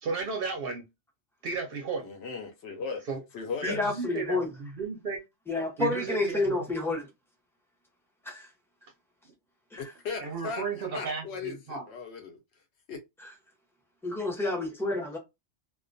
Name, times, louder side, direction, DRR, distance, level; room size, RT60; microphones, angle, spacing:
voice 1, 0.0-0.9 1.4-2.1 3.1-3.2 3.6-5.2 5.8-6.4 10.2-11.9, right 4 dB, 60° right, 0.7 m, -34 dB
voice 2, 2.0-3.0 3.3-3.8 9.8-10.6 10.9-12.4 12.9-13.0, left 5 dB, 70° left, 0.8 m, -37 dB
voice 3, 3.6-4.5 5.5-7.1 8.3-8.5 9.7-9.8 13.2-13.3 14.0-15.2, left 2 dB, 5° left, 0.5 m, -29 dB
2.3 x 2.2 x 2.5 m
omnidirectional pair, 1.3 m